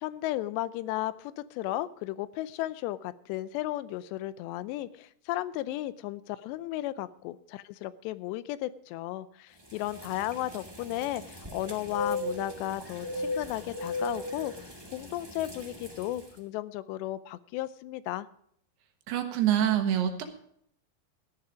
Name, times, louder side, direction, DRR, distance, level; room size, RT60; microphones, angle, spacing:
voice 1, 0.0-18.3, left 15 dB, 90° left, 16 dB, 2.9 m, -34 dB
sound 1, 9.7-16.3, left 2 dB, 35° right, 0.4 m, -37 dB
voice 2, 19.1-20.2, right 10 dB, 75° right, 6 dB, 3.4 m, -26 dB
14.5 x 10.5 x 5.0 m, 0.67 s
omnidirectional pair, 4.9 m